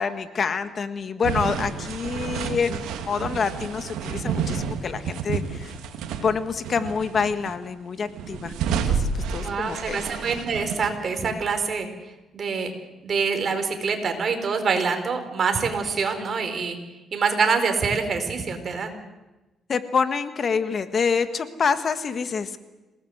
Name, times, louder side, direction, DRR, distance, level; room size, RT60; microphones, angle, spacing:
voice 1, 0.0-5.7 6.2-8.5 8.9-10.0 19.7-22.6, left 5 dB, 50° left, 10 dB, 1.6 m, -27 dB
sound 1, 1.2-6.3 6.6-7.5 8.0-10.9, right 6 dB, 90° right, 2.4 m, -30 dB
voice 2, 9.4-11.9 12.3-12.7 13.0-16.8 17.1-18.9, right 5 dB, 50° right, 6 dB, 4.5 m, -25 dB
27.0 x 18.5 x 8.0 m, 1.1 s
cardioid pair, 90°, 0 cm